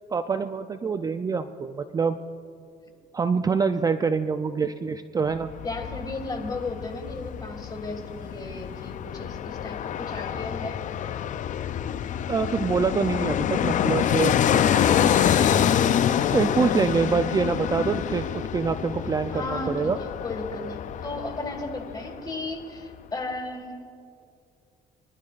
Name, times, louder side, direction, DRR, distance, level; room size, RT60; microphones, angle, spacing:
voice 1, 0.1-2.2 3.1-5.5 12.3-14.3 16.3-20.0, right 5 dB, 20° right, 8 dB, 0.4 m, -25 dB
Fixed-wing aircraft airplane, 5.3-22.3 22.6-22.7, left 9 dB, 50° left, 0.5 m, -26 dB
voice 2, 5.6-10.9 19.3-23.8, left 2 dB, 25° left, 4 dB, 1.9 m, -35 dB
23.5 x 11.5 x 2.5 m, 2.4 s
cardioid pair, 110°, 17 cm